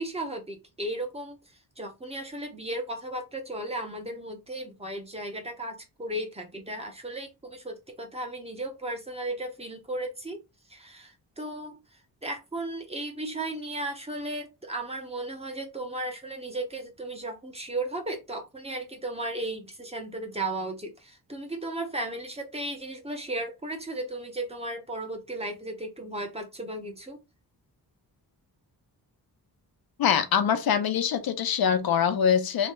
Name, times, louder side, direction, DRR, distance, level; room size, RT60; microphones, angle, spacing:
voice 1, 0.0-1.4 1.8-10.4 10.7-11.8 12.2-27.2, right 1 dB, 15° right, 0.9 m, -35 dB
voice 2, 30.0-32.7, left 7 dB, 65° left, 0.7 m, -24 dB
3.3 x 2.8 x 4.3 m
wide cardioid pair, 155°, 39 cm